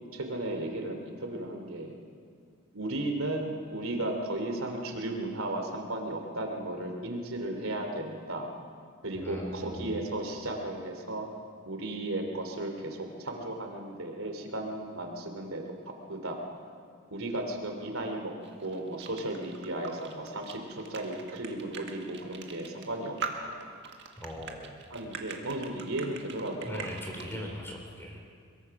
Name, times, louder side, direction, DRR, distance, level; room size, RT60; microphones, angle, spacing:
voice 1, 0.1-2.0 2.7-8.5 9.0-11.3 11.6-16.4 17.1-18.3 18.6-23.6 24.9-26.9 27.3-27.5, right 1 dB, 85° right, 3 dB, 3.1 m, -35 dB
voice 2, 9.1-9.9 24.2-24.7 26.6-28.2, equal, 10° left, 0 dB, 3.8 m, -40 dB
sound 1, 18.4-27.3, right 6 dB, 55° right, 1.9 m, -41 dB
22.5 x 22.0 x 6.0 m, 2.2 s
head